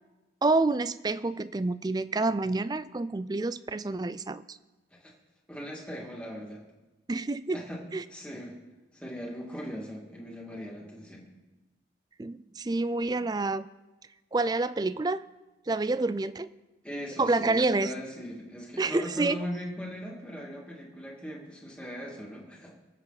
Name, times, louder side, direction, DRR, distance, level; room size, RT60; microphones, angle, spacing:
voice 1, 0.4-4.6 7.1-7.6 7.9-8.0 12.2-13.7 14.3-15.2 15.7-16.5 17.2-17.9 18.8-19.4, right 3 dB, 20° right, 16 dB, 0.3 m, -28 dB
voice 2, 5.5-6.6 7.5-7.8 8.1-8.6 8.9-11.3 16.8-22.7, equal, 5° left, -3 dB, 2.3 m, -39 dB
24.0 x 8.0 x 4.1 m, 1.1 s
head